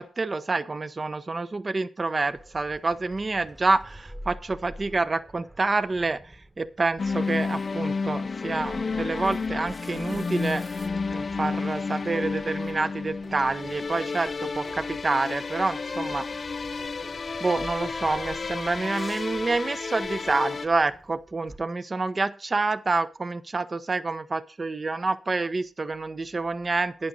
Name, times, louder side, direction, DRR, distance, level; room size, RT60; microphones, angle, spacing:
voice 1, 0.0-6.2 6.6-10.6 11.1-16.3 17.4-27.1, right 3 dB, 35° right, 13 dB, 0.9 m, -28 dB
sound 1, 2.2-21.6, right 1 dB, 15° right, 1.5 m, -48 dB
sound 2, 7.0-20.7, left 4 dB, 50° left, 0.5 m, -31 dB
sound 3, 13.2-13.4 13.9-14.1 14.6-14.8 15.4-15.6 16.1-16.3 16.8-16.9 17.5-17.6 18.2-18.3 18.8-19.0, right 3 dB, 85° right, 4.2 m, -51 dB
11.0 x 9.3 x 4.0 m, 0.36 s
cardioid pair, 75°, 0 cm